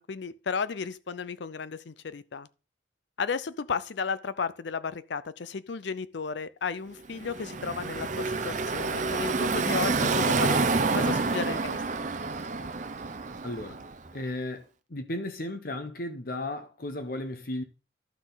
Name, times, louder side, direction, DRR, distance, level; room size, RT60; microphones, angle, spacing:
voice 1, 0.0-2.5 3.2-10.7 10.9-11.8, left 5 dB, 70° left, 0.5 m, -34 dB
Car passing by / Traffic noise roadway noise, 7.1-14.1, right 3 dB, 40° right, 0.6 m, -28 dB
voice 2, 13.4-13.8 14.1-17.6, left 1 dB, 50° left, 0.9 m, -35 dB
12.0 x 6.1 x 4.0 m
head